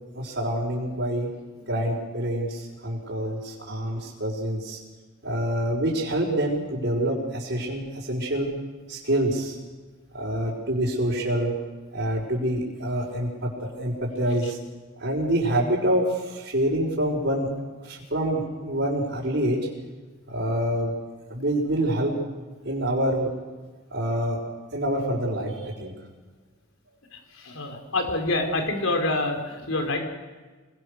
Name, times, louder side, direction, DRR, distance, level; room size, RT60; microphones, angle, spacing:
voice 1, 0.1-1.3 1.7-4.8 5.2-8.5 8.9-9.6 10.1-11.5 11.9-14.6 15.0-17.5 17.8-19.6 20.3-20.9 21.3-22.1 22.6-23.3 23.9-24.4 24.7-25.9, right 1 dB, 55° right, -6 dB, 5.1 m, -26 dB
voice 2, 27.1-30.0, left 2 dB, 80° left, 4 dB, 4.5 m, -27 dB
27.5 x 21.0 x 6.7 m, 1.3 s
head